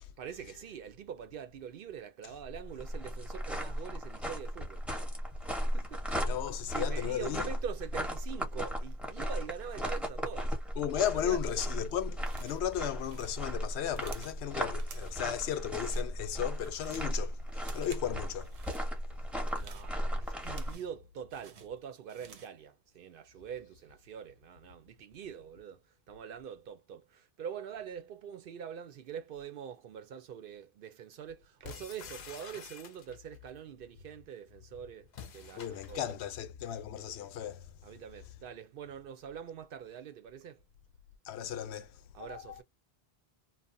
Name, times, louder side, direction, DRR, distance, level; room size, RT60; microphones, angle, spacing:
voice 1, 0.2-4.9 5.4-6.2 6.7-10.6 11.2-11.7 19.5-25.8 26.1-36.3 37.8-40.6 42.1-42.6, right 8 dB, 65° right, 0.7 m, -44 dB
sound 1, 2.4-20.7, equal, ahead, 0.8 m, -36 dB
voice 2, 6.1-7.4 10.8-17.4 17.7-18.5 35.6-37.7 41.2-42.6, left 10 dB, 85° left, 0.9 m, -35 dB
sound 2, 12.2-12.7 13.0-14.4 14.8-15.3 15.6-16.1 16.4-17.1 17.5-18.1 18.4-18.9 19.4-21.0 21.3-22.6, right 6 dB, 90° right, 1.0 m, -53 dB
sound 3, 31.6-33.4 35.1-36.2, left 7 dB, 55° left, 0.5 m, -48 dB
2.7 x 2.1 x 2.5 m
omnidirectional pair, 1.1 m